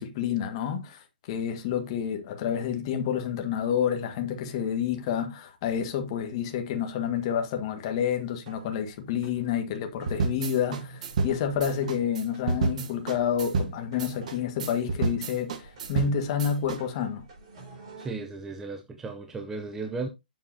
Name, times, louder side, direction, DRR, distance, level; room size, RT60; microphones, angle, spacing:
voice 1, 0.0-17.2, left 8 dB, 30° left, 1.6 m, -29 dB
sound 1, 8.5-18.1, right 3 dB, 30° right, 5.8 m, -50 dB
sound 2, 10.1-16.8, right 4 dB, 50° right, 1.4 m, -30 dB
voice 2, 18.0-20.1, right 3 dB, 5° right, 0.6 m, -35 dB
8.3 x 7.6 x 2.8 m
hypercardioid pair, 160°, 5 cm